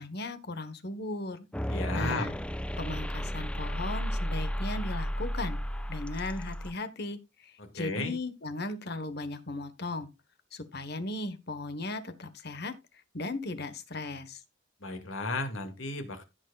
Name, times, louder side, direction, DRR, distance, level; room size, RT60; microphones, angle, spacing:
voice 1, 0.0-1.5 1.9-2.3 2.8-5.6 5.9-10.1 10.5-12.8 13.1-14.4, left 2 dB, 50° left, 1.3 m, -37 dB
sound 1, 1.5-6.7, equal, 5° left, 0.5 m, -33 dB
voice 2, 1.7-2.3 7.6-8.1 14.8-16.2, left 2 dB, 70° left, 2.3 m, -34 dB
16.0 x 6.4 x 2.4 m
head